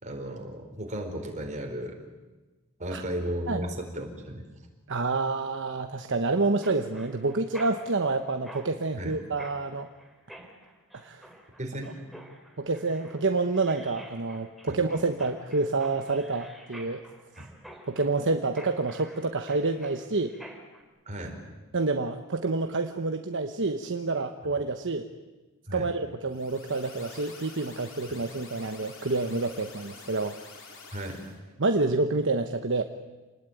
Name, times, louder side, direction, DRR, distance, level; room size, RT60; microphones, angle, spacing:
voice 1, 0.0-1.9 2.8-4.5 9.0-9.1 11.6-11.9 14.7-14.8 17.4-17.5 21.1-21.4 25.7-25.9 30.9-31.2, right 1 dB, 35° right, 3 dB, 4.7 m, -35 dB
voice 2, 4.9-9.9 11.0-11.2 12.6-17.0 17.9-20.3 21.7-25.1 25.7-30.3 31.6-32.8, right 3 dB, 55° right, 6 dB, 1.1 m, -28 dB
Mechanisms, 6.6-20.8, right 1 dB, ahead, 3.3 m, -49 dB
sound 1, 26.3-31.4, left 4 dB, 60° left, 4.5 m, -48 dB
28.5 x 20.0 x 9.3 m, 1.2 s
head